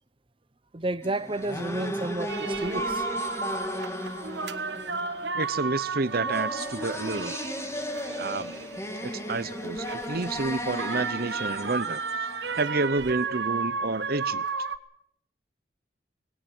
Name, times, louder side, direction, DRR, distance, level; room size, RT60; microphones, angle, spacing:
voice 1, 0.7-3.0, right 2 dB, 30° right, 0.8 m, -31 dB
sound 1, 1.0-12.9, equal, 15° left, 2.9 m, -35 dB
sound 2, 2.3-14.8, right 4 dB, 90° right, 1.4 m, -33 dB
voice 2, 5.3-7.3 8.2-8.5 9.0-12.0 12.6-14.4, right 3 dB, 60° right, 0.9 m, -29 dB
20.0 x 18.0 x 9.3 m
head